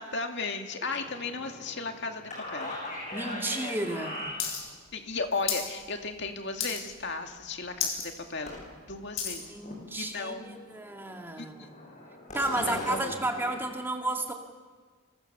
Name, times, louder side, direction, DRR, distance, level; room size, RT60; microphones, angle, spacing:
voice 1, 0.0-2.8 4.9-8.6 8.9-9.6 10.0-10.7 11.4-11.7 12.6-13.1, left 3 dB, 55° left, 4 dB, 2.3 m, -35 dB
sound 1, 0.9-4.8 8.5-8.9 9.3-9.9 10.2-10.3 10.7-13.6, left 1 dB, 35° left, 7.9 m, -40 dB
voice 2, 3.1-4.3 9.5-11.7 12.3-14.3, right 2 dB, 10° right, 3 dB, 2.1 m, -32 dB
sound 2, 4.4-4.6 4.9-5.7 6.1-6.3 6.6-7.0 7.4-7.5 7.7-8.1 8.5-9.4 10.1-10.2, left 7 dB, 75° left, 6.7 m, -32 dB
30.0 x 27.0 x 6.9 m, 1.5 s
head